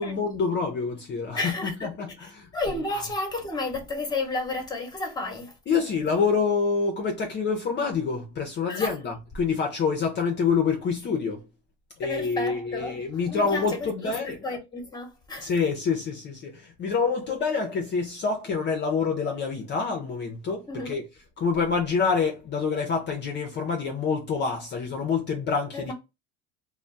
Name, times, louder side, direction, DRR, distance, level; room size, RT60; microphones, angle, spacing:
voice 1, 0.0-3.0 5.7-11.4 12.0-14.4 15.4-21.0 21.4-25.9, left 5 dB, 30° left, 0.5 m, -27 dB
voice 2, 1.3-1.9 2.2-5.6 8.7-9.0 12.0-15.5 20.7-21.0 25.7-25.9, left 2 dB, 10° left, 0.9 m, -32 dB
2.1 x 2.1 x 3.8 m
supercardioid pair, 100°, 36 cm